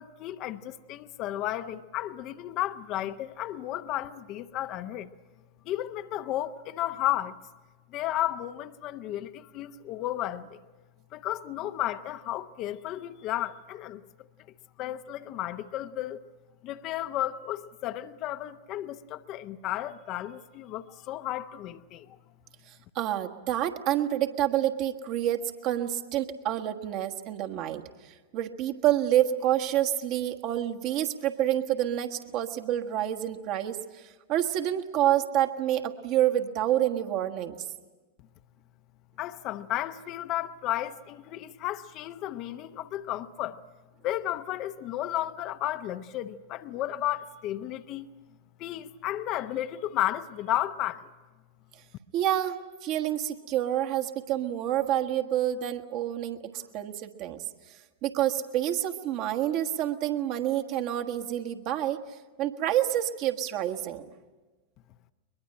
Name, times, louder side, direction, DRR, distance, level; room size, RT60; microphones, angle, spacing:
voice 1, 0.0-5.1 5.6-7.4 7.9-10.6 11.1-14.0 14.8-16.2 16.6-22.2 39.2-43.6 44.0-48.1 48.6-51.1, left 13 dB, 40° left, 0.8 m, -33 dB
voice 2, 22.9-37.5 52.1-57.4 58.0-62.0 62.4-64.1, right 12 dB, 40° right, 1.5 m, -28 dB
22.5 x 22.0 x 8.8 m
figure-of-eight pair, 90°, 0 cm